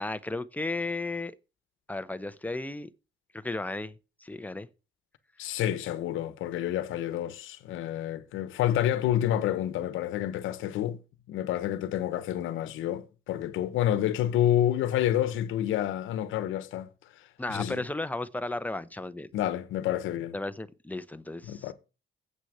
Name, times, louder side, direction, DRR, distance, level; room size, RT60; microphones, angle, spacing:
voice 1, 0.0-1.4 1.9-2.9 3.3-4.7 17.4-19.3 20.3-21.7, left 2 dB, 10° left, 0.8 m, -34 dB
voice 2, 5.4-11.0 11.3-16.9 17.5-17.8 19.3-20.3 21.4-21.7, left 11 dB, 90° left, 1.1 m, -29 dB
8.1 x 6.0 x 7.9 m
cardioid pair, 90°, 20 cm